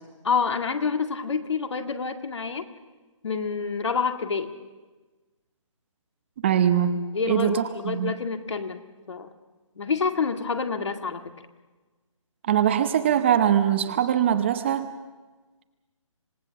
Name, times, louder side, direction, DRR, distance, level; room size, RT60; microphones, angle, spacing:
voice 1, 0.2-2.6 3.2-4.5 7.1-8.8 9.1-9.3 9.8-11.3, left 5 dB, 60° left, 6 dB, 2.1 m, -27 dB
voice 2, 6.4-7.0 7.3-8.1 12.5-14.9, right 9 dB, 20° right, 9 dB, 0.8 m, -22 dB
27.0 x 18.0 x 7.1 m, 1.3 s
hypercardioid pair, 165°, 17 cm